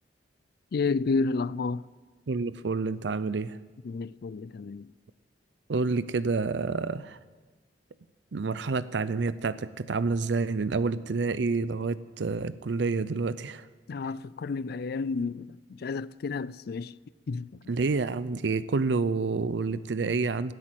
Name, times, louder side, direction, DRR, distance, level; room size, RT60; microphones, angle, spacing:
voice 1, 0.7-1.9 3.8-4.9 13.9-16.9 17.3-17.6, left 4 dB, 60° left, 0.4 m, -31 dB
voice 2, 2.3-3.6 5.7-7.2 8.3-13.7 17.7-20.5, right 4 dB, 85° right, 0.5 m, -28 dB
16.5 x 8.5 x 9.0 m
head